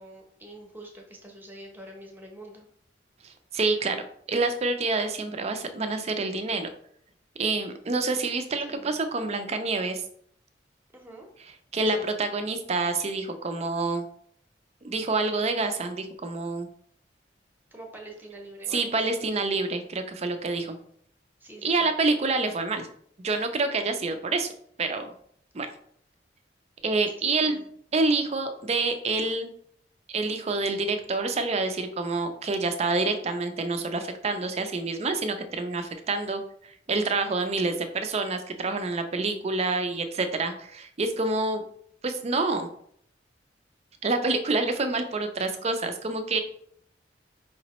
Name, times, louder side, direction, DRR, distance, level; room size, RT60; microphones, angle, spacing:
voice 1, 0.0-2.7 8.7-9.0 10.9-11.3 11.9-12.1 17.7-19.0 21.4-21.9 27.2-27.7, right 1 dB, 10° right, 1 dB, 0.8 m, -45 dB
voice 2, 3.2-4.0 4.3-6.7 7.4-10.0 11.7-14.1 14.8-16.7 18.7-20.8 21.6-22.9 23.2-24.5 24.8-25.1 25.5-25.7 26.8-27.6 27.9-29.5 30.1-41.6 42.0-42.7 44.0-46.4, right 3 dB, 35° right, 7 dB, 0.5 m, -27 dB
5.0 x 3.0 x 2.9 m, 0.64 s
head